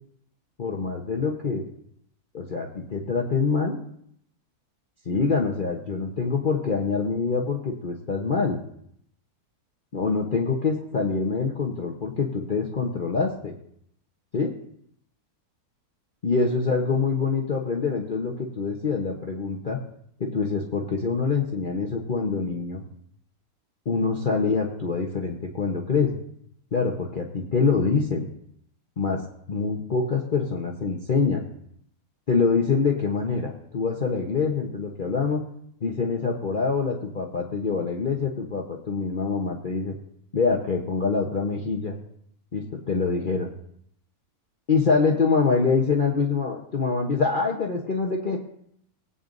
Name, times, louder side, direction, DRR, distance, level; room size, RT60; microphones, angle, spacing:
voice 1, 0.6-1.6 2.3-3.8 5.0-8.6 9.9-13.5 14.3-14.5 16.2-19.8 20.2-22.8 23.8-26.2 26.7-28.3 29.0-29.2 29.5-31.4 32.3-35.4 35.8-39.9 40.3-42.0 42.5-43.5 44.7-48.4, left 4 dB, 35° left, 0 dB, 1.1 m, -25 dB
21.0 x 8.8 x 2.6 m, 0.71 s
omnidirectional pair, 1.6 m